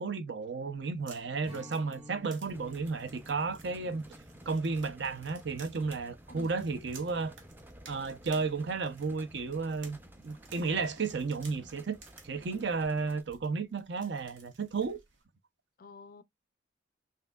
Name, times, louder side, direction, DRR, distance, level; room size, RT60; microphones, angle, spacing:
voice 1, 0.0-4.0 4.5-7.4 7.9-10.0 10.2-12.0 12.2-15.0, right 4 dB, 60° right, 0.6 m, -33 dB
sound 1, 0.7-15.2, right 4 dB, 80° right, 1.2 m, -57 dB
Strum, 1.4-6.9, left 1 dB, 30° right, 1.9 m, -53 dB
sound 2, 2.4-13.2, equal, 10° right, 0.5 m, -53 dB
voice 2, 6.3-6.8 15.8-16.2, left 4 dB, 45° left, 0.4 m, -49 dB
5.7 x 2.6 x 2.3 m
head